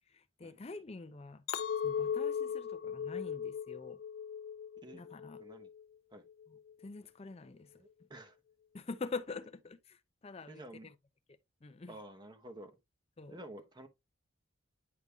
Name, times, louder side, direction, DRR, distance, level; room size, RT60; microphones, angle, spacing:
voice 1, 0.1-4.0 4.9-5.4 6.8-7.7 8.7-10.9 11.6-11.9 13.2-13.4, left 4 dB, 30° left, 0.5 m, -45 dB
Chink clink, 1.5-5.8 6.3-6.7, left 7 dB, 75° left, 0.6 m, -38 dB
voice 2, 5.4-5.7 6.1-6.3 7.7-8.4 10.5-10.9 11.9-12.8 13.3-13.9, right 1 dB, 20° right, 0.9 m, -50 dB
9.6 x 5.2 x 2.3 m
head